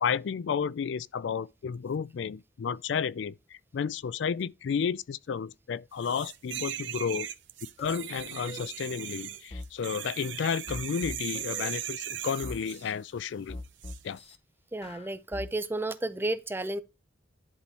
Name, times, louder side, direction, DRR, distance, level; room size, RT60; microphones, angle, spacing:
voice 1, 0.0-7.3 7.8-13.6 14.0-14.2, left 6 dB, 65° left, 0.3 m, -32 dB
sound 1, 6.0-12.9 13.8-14.0, right 11 dB, 70° right, 0.7 m, -38 dB
sound 2, 7.8-7.9 8.1-8.7 9.5-9.7 10.7-11.9 12.4-12.9 13.5-14.4 14.8-15.5, left 1 dB, 30° left, 0.7 m, -41 dB
voice 2, 14.7-16.8, right 2 dB, 10° right, 0.5 m, -32 dB
10.5 x 3.6 x 4.1 m
head